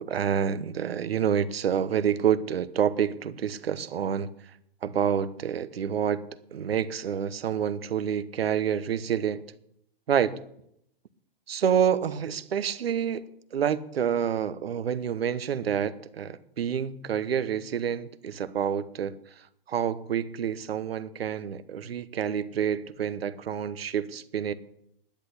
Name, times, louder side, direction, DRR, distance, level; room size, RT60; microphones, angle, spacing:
voice 1, 0.0-4.3 4.8-6.2 6.5-9.4 10.1-10.4 11.5-13.2 13.5-19.1 19.7-24.5, right 8 dB, 85° right, 13 dB, 1.1 m, -28 dB
10.5 x 8.6 x 9.8 m, 0.73 s
hypercardioid pair, 140°, 30 cm